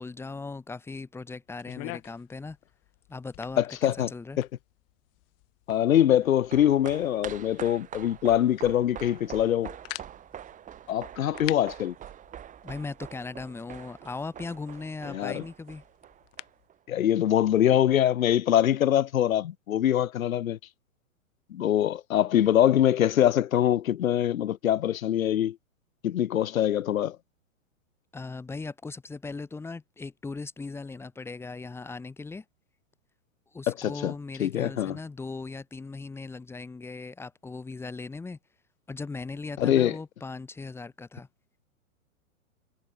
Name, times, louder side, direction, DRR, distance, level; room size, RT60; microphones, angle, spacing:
voice 1, 0.0-2.6 3.1-4.4 12.6-15.8 28.1-32.4 33.5-38.4 38.9-41.3, left 3 dB, 5° left, 1.0 m, -38 dB
sound 1, 1.5-16.7, left 27 dB, 40° left, 4.9 m, -48 dB
voice 2, 3.6-4.1 4.4-4.5 5.7-9.7 10.9-11.9 15.1-15.4 16.9-20.6 21.5-25.6 26.0-27.2 33.7-34.1 34.4-35.0 39.6-40.0, left 11 dB, 90° left, 0.8 m, -24 dB
sound 2, 6.2-16.8 17.0-17.1, right 10 dB, 20° right, 1.9 m, -45 dB
hypercardioid pair, 130°, 40 cm